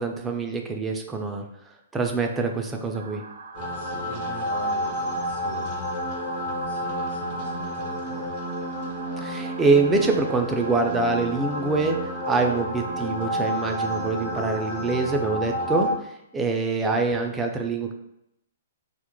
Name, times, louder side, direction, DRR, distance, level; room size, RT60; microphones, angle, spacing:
voice 1, 0.0-1.4 1.9-3.2 9.2-12.0 12.3-17.9, right 3 dB, 15° right, 3 dB, 0.3 m, -25 dB
sound 1, 2.9-15.1, right 4 dB, 75° right, 0.5 m, -44 dB
sound 2, 3.5-16.0, equal, 45° left, 0.7 m, -30 dB
voice 2, 3.7-8.3 16.8-17.0, left 1 dB, 85° left, -6 dB, 1.3 m, -41 dB
2.1 x 2.0 x 3.0 m, 0.82 s
hypercardioid pair, 135°, 0 cm